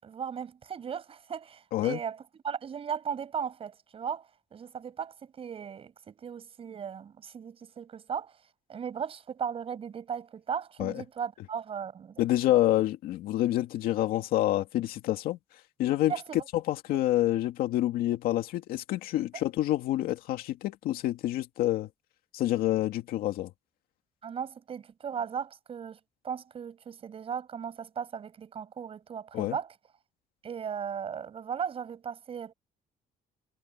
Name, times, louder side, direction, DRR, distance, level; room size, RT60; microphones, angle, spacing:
voice 1, 0.0-8.4 8.7-12.2 16.1-16.4 19.3-19.4 24.2-26.0 26.2-29.7 30.4-32.5, right 7 dB, 40° right, 7.3 m, -37 dB
voice 2, 12.2-15.4 15.8-16.1 16.5-21.9 22.3-23.5 29.3-29.6, left 14 dB, 80° left, 2.2 m, -27 dB
cardioid pair, 135°, 15 cm